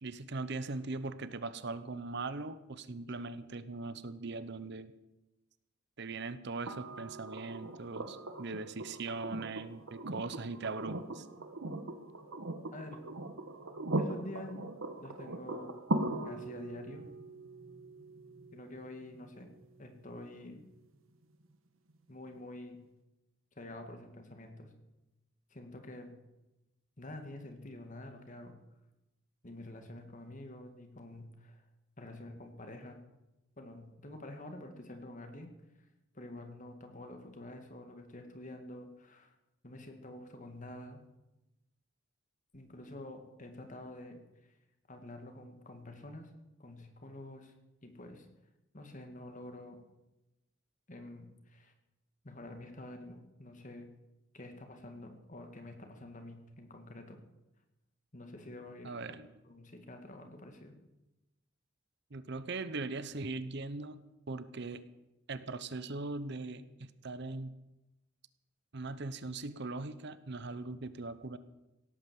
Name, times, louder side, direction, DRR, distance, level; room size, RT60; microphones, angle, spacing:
voice 1, 0.0-4.9 6.0-11.3 58.8-59.3 62.1-64.8 65.3-67.5 68.7-71.4, right 3 dB, 55° right, 13 dB, 0.8 m, -40 dB
sound 1, 6.7-20.6 22.3-22.4, right 1 dB, 85° right, 1.4 m, -40 dB
voice 2, 12.7-13.0 14.0-14.6 15.0-15.7 16.2-17.1 18.5-19.5 19.8-20.6 22.1-22.8 23.6-24.7 25.5-26.2 27.0-28.6 29.4-31.6 32.0-33.0 33.6-35.5 36.1-39.4 39.6-41.0 42.5-44.6 44.9-46.3 46.6-47.5 47.8-48.3 48.7-49.8 50.9-51.7 52.2-53.9 54.3-57.2 58.1-59.2 59.5-60.8, left 1 dB, 40° left, 5 dB, 2.1 m, -48 dB
17.0 x 8.9 x 7.7 m, 0.96 s
head